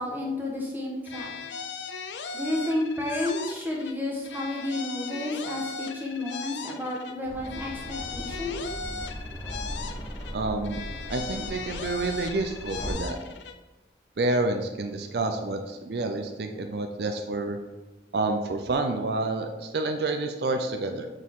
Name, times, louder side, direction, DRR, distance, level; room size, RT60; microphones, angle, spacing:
voice 1, 0.0-1.3 2.3-8.7, left 1 dB, 10° right, -2 dB, 1.1 m, -31 dB
sound 1, 1.0-4.0 4.2-7.2 7.4-10.4 10.6-13.6, left 4 dB, 85° left, 0.5 m, -38 dB
sound 2, 7.2-12.9, equal, 20° left, 1.1 m, -38 dB
voice 2, 10.3-10.8 11.1-13.2 14.2-17.6 18.1-21.1, right 2 dB, 65° right, 5 dB, 0.4 m, -29 dB
6.1 x 4.4 x 3.6 m, 1.2 s
head